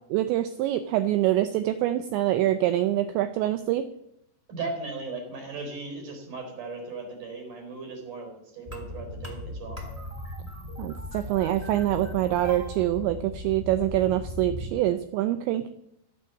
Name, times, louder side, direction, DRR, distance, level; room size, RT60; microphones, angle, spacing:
voice 1, 0.1-3.9 10.8-15.7, right 13 dB, 85° right, 10 dB, 2.6 m, -25 dB
voice 2, 4.5-9.8, right 3 dB, 40° right, 3 dB, 5.2 m, -37 dB
sound 1, 8.7-14.7, left 1 dB, 10° right, 2.0 m, -38 dB
15.0 x 9.4 x 7.1 m, 0.78 s
omnidirectional pair, 5.9 m